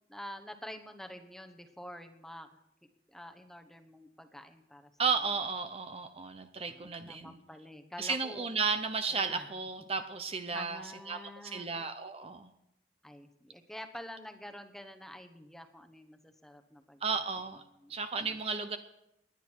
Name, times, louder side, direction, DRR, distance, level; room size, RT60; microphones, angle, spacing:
voice 1, 0.1-2.5 3.1-4.9 6.7-8.5 9.1-9.5 10.5-11.7 13.0-17.3 17.8-17.9, left 1 dB, ahead, 5 dB, 1.0 m, -48 dB
voice 2, 5.0-7.4 8.0-10.8 11.1-12.5 17.0-17.6 17.9-18.8, right 5 dB, 35° right, 8 dB, 0.7 m, -34 dB
19.5 x 10.5 x 4.6 m, 0.84 s
head